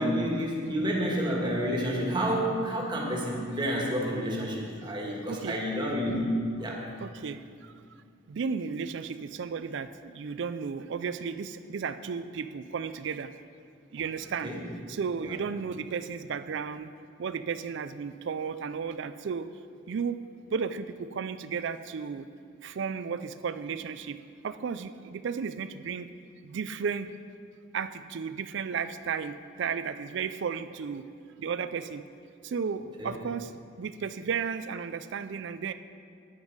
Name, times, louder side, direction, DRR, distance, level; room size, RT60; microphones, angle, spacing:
voice 1, 0.0-6.8 14.4-14.6 15.2-15.3 33.0-33.1, equal, 25° right, -2 dB, 1.6 m, -29 dB
voice 2, 5.3-5.6 7.0-7.7 8.3-13.3 13.9-14.5 14.9-16.9 17.2-19.5 19.9-20.2 20.5-22.3 22.6-24.2 24.4-26.1 26.4-27.1 27.7-31.0 31.4-32.0 32.4-33.5 33.8-35.7, right 6 dB, 60° right, 12 dB, 0.4 m, -34 dB
9.5 x 9.0 x 5.2 m, 2.4 s
head